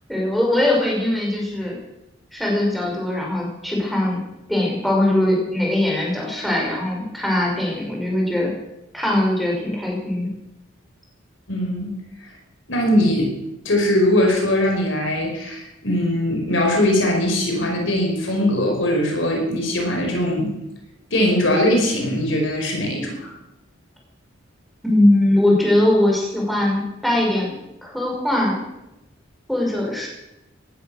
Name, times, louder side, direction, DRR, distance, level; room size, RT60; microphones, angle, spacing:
voice 1, 0.1-1.8 2.3-4.2 4.5-8.5 8.9-10.3 24.8-28.6 29.5-30.1, left 1 dB, ahead, -3 dB, 5.4 m, -21 dB
voice 2, 11.5-11.9 12.7-13.3 13.6-20.5 21.1-23.3, left 1 dB, 65° left, 1 dB, 5.0 m, -20 dB
18.0 x 12.0 x 6.5 m, 0.89 s
head